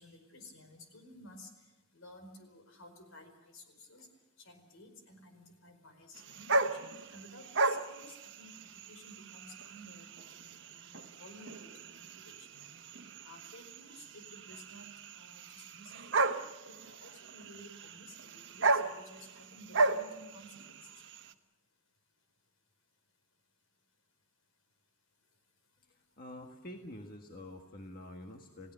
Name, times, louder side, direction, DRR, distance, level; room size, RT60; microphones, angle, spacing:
voice 1, 0.0-1.5 1.9-4.1 4.4-12.8 13.2-14.9 15.1-16.3 16.7-20.8, left 1 dB, 75° left, 7 dB, 4.9 m, -54 dB
sound 1, 6.1-21.3, right 3 dB, 60° right, 1.2 m, -36 dB
voice 2, 25.9-28.7, left 1 dB, 45° left, 3 dB, 1.7 m, -47 dB
29.5 x 16.5 x 6.9 m, 1.1 s
head